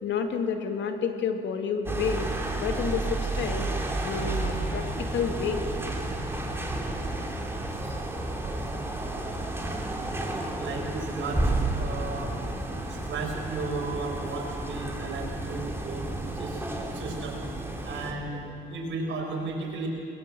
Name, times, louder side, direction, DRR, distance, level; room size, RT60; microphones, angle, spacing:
voice 1, 0.0-3.7 4.0-5.7, left 6 dB, 70° left, 6 dB, 2.3 m, -30 dB
sound 1, 1.9-18.1, right 2 dB, 10° right, 3.4 m, -31 dB
voice 2, 10.6-11.5 11.8-12.3 12.9-16.1 16.3-16.6 16.9-17.4 17.8-18.4 18.7-19.9, right 3 dB, 75° right, 0 dB, 5.8 m, -34 dB
21.5 x 20.5 x 7.8 m, 2.9 s
cardioid pair, 90°, 20 cm